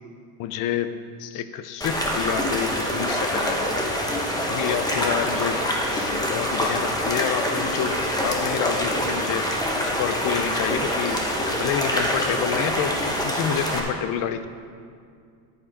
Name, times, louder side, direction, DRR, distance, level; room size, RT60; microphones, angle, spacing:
voice 1, 0.4-3.8 4.5-5.6 5.9-11.3 11.6-14.5, left 9 dB, 50° left, 11 dB, 0.7 m, -28 dB
sound 1, 1.8-13.8, equal, 10° left, 1.3 m, -25 dB
10.0 x 9.7 x 3.6 m, 2.2 s
supercardioid pair, 125°, 42 cm